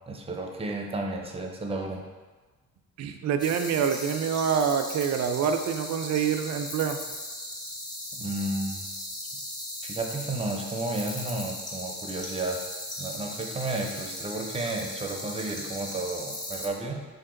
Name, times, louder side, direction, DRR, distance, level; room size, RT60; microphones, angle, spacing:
voice 1, 0.1-2.0 8.1-8.9 9.8-12.6 13.0-17.1, right 2 dB, 20° right, 2 dB, 0.6 m, -32 dB
voice 2, 3.0-7.0, right 7 dB, 65° right, 7 dB, 0.5 m, -26 dB
sound 1, 3.4-16.7, left 1 dB, 15° left, 0.8 m, -38 dB
4.2 x 2.9 x 3.7 m, 1.3 s
cardioid pair, 90°, 30 cm